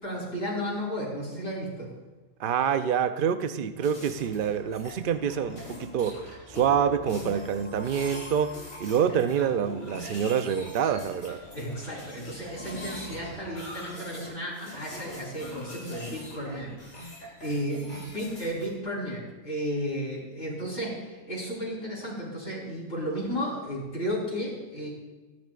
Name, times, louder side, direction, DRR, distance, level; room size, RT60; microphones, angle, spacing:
voice 1, 0.0-1.9 4.4-4.5 11.5-24.9, equal, 50° left, -5 dB, 4.5 m, -33 dB
voice 2, 2.4-11.4, right 8 dB, 55° right, 10 dB, 0.6 m, -27 dB
sound 1, 3.8-18.7, left 1 dB, 85° left, 5.3 m, -43 dB
23.0 x 10.5 x 2.4 m, 1.2 s
omnidirectional pair, 1.3 m